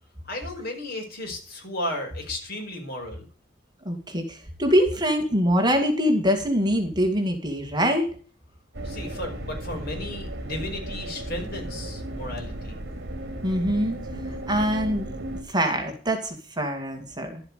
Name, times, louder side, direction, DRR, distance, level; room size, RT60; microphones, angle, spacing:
voice 1, 0.2-3.3 8.8-12.8, left 1 dB, 55° left, 2 dB, 5.4 m, -34 dB
voice 2, 3.8-8.1 13.4-14.0 14.5-15.1 15.5-17.4, equal, 20° right, 4 dB, 2.3 m, -24 dB
sound 1, 8.7-15.4, right 1 dB, 55° right, 3.1 m, -35 dB
12.5 x 7.7 x 6.5 m, 0.40 s
head